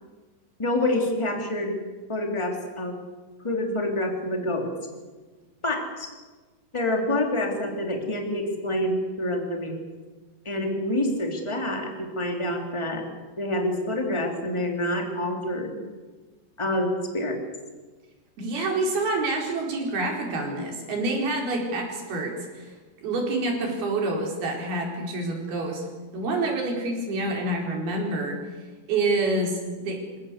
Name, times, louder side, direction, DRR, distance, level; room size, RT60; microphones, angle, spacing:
voice 1, 0.6-1.8 2.1-3.0 3.4-4.7 5.6-6.1 6.7-9.8 10.4-13.0 13.4-15.8 16.6-17.4, left 1 dB, 10° left, 3 dB, 3.0 m, -27 dB
voice 2, 18.4-22.7 23.0-25.9 26.1-28.4 28.9-30.2, right 2 dB, 85° right, 1 dB, 6.4 m, -27 dB
27.0 x 16.5 x 8.3 m, 1.3 s
omnidirectional pair, 4.3 m